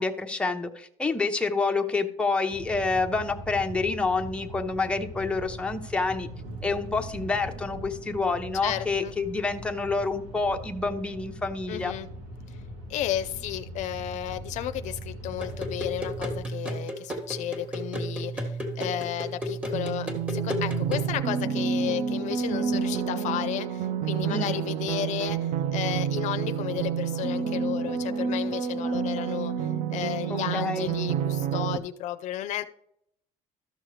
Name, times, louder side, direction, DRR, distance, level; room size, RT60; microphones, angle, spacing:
voice 1, 0.0-6.3 6.6-11.9 24.3-24.6 30.3-31.0, left 3 dB, 10° left, 0.7 m, -28 dB
sound 1, 2.5-16.4, equal, 85° right, 2.0 m, -41 dB
voice 2, 8.6-9.1 11.7-12.1 12.5-12.6 12.9-32.6, left 12 dB, 65° left, 0.5 m, -33 dB
sound 2, 15.4-21.1, right 1 dB, 10° right, 1.6 m, -33 dB
sound 3, 19.7-31.8, right 7 dB, 55° right, 0.6 m, -29 dB
13.0 x 6.3 x 3.1 m
cardioid pair, 135°, 13 cm